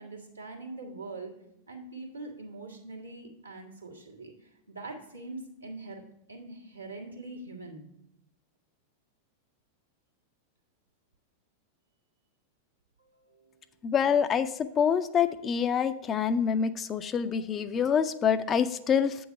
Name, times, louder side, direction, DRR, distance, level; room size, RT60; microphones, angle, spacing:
voice 1, 0.0-1.3 1.7-6.0 6.3-7.8 13.1-13.6, right 2 dB, 85° right, -3 dB, 1.6 m, -43 dB
voice 2, 13.8-14.5 14.8-19.2, left 7 dB, 25° left, 12 dB, 0.4 m, -26 dB
8.3 x 3.9 x 6.5 m, 0.81 s
figure-of-eight pair, 90°, 0 cm